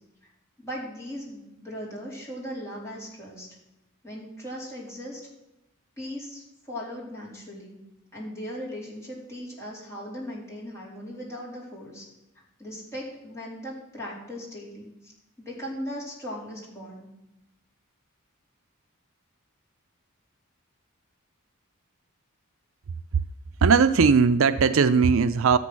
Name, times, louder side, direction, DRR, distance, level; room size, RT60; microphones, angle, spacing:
voice 1, 0.6-3.5 4.0-5.2 6.0-7.8 8.1-12.1 12.3-15.1 15.4-17.1, equal, 15° left, -5 dB, 4.1 m, -38 dB
voice 2, 23.6-25.6, right 5 dB, 60° right, 12 dB, 0.5 m, -19 dB
13.0 x 8.7 x 6.2 m, 0.91 s
head